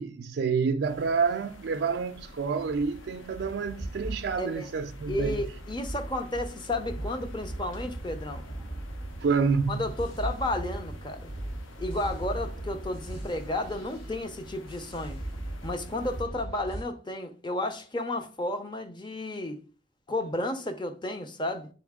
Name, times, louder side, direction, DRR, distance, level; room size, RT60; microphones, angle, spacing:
voice 1, 0.0-5.4 9.2-9.8, right 5 dB, 55° right, 0.3 m, -28 dB
sound 1, 0.8-16.2, left 1 dB, 85° left, 0.9 m, -50 dB
sound 2, 2.7-16.8, right 1 dB, 45° left, 2.7 m, -38 dB
voice 2, 4.4-4.7 5.1-8.4 9.7-11.3 11.8-15.2 15.6-19.6 20.1-21.7, left 1 dB, 25° left, 0.7 m, -32 dB
8.9 x 4.1 x 3.6 m
head